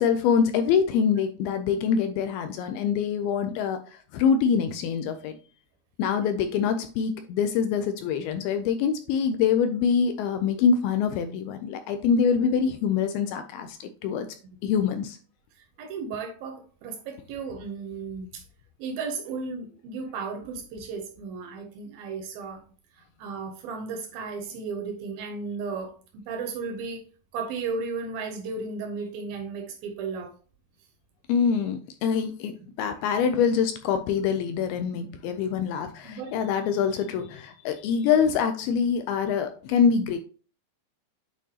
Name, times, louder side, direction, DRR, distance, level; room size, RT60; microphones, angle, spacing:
voice 1, 0.0-5.4 6.0-14.3 14.6-15.2 31.3-40.2, left 6 dB, 80° left, 8 dB, 2.3 m, -25 dB
voice 2, 15.8-18.4 18.8-22.6 23.2-26.0 26.3-27.0 27.3-30.3 34.9-35.4 36.0-36.5, right 4 dB, 75° right, 4 dB, 2.4 m, -35 dB
8.9 x 4.4 x 2.8 m, 0.40 s
omnidirectional pair, 4.8 m